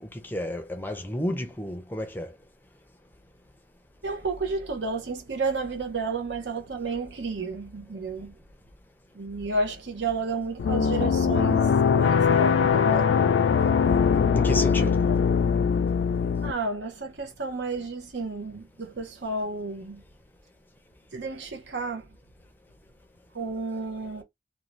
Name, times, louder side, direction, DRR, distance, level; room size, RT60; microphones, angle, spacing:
voice 1, 0.0-2.3 14.3-15.0, left 1 dB, 10° left, 0.4 m, -31 dB
voice 2, 4.0-8.4 9.1-13.3 14.8-14.9 16.4-20.0 21.1-22.2 23.3-24.2, right 3 dB, 80° right, 0.8 m, -31 dB
sound 1, 10.6-16.5, left 6 dB, 85° left, 0.3 m, -21 dB
2.6 x 2.3 x 3.0 m
head